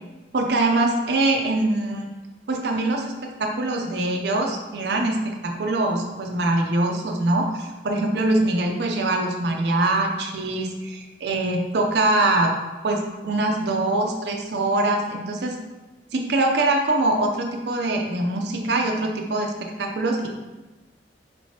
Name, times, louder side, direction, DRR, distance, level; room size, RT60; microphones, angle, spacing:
voice 1, 0.3-2.1 2.5-12.5 12.8-15.6 16.1-20.3, right 2 dB, 65° right, 1 dB, 0.5 m, -23 dB
5.2 x 3.2 x 2.8 m, 1.1 s
head